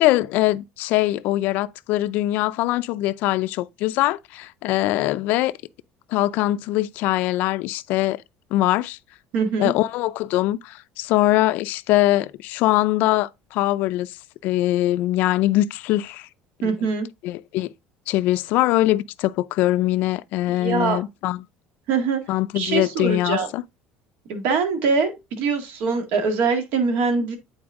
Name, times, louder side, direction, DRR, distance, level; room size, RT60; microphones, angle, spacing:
voice 1, 0.0-5.5 6.1-8.2 8.5-9.0 9.6-14.1 14.4-16.3 16.6-16.7 17.2-17.7 18.1-21.4 22.3-23.6, left 16 dB, 65° left, 0.4 m, -22 dB
voice 2, 9.3-9.7 16.6-17.1 20.6-21.0 21.9-22.2 22.6-23.5 24.3-27.4, right 5 dB, 65° right, 1.9 m, -23 dB
8.8 x 4.3 x 3.6 m
cardioid pair, 150°, 3 cm